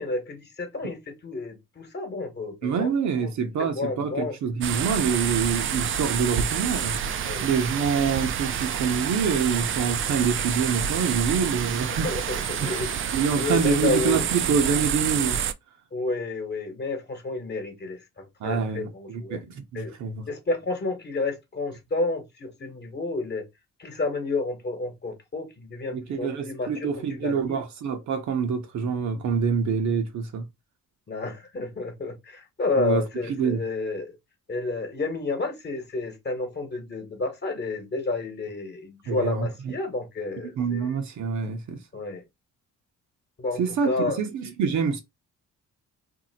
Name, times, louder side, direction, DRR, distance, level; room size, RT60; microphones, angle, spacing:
voice 1, 0.0-2.9 3.2-3.3 3.7-4.3 7.2-7.4 11.9-12.9 13.3-14.2 15.9-19.4 19.7-19.9 20.3-23.4 23.8-27.6 31.1-34.2 34.5-40.9 41.9-42.2 43.4-44.2, left 3 dB, 35° left, 1.1 m, -30 dB
voice 2, 2.6-7.0 7.4-12.1 12.6-12.8 13.1-15.4 18.4-20.3 25.9-30.5 32.8-33.0 33.3-33.6 39.1-39.7 40.4-41.8 43.6-45.0, right 6 dB, 70° right, 0.9 m, -26 dB
sound 1, 4.6-15.5, right 8 dB, 45° right, 0.4 m, -28 dB
2.7 x 2.1 x 4.0 m
cardioid pair, 90°, 30 cm